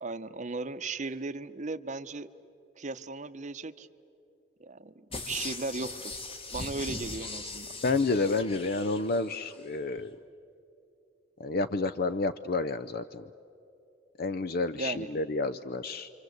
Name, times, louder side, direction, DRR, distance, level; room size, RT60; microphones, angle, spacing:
voice 1, 0.0-2.3 2.8-3.9 4.6-6.2 6.5-7.7 14.8-15.1, right 3 dB, 40° right, 11 dB, 0.8 m, -36 dB
sound 1, 5.1-9.6 10.0-10.1, left 3 dB, 30° left, 1.5 m, -40 dB
voice 2, 7.8-10.1 11.4-13.2 14.2-16.1, left 3 dB, 55° left, 12 dB, 0.6 m, -30 dB
28.5 x 25.0 x 7.9 m, 2.7 s
head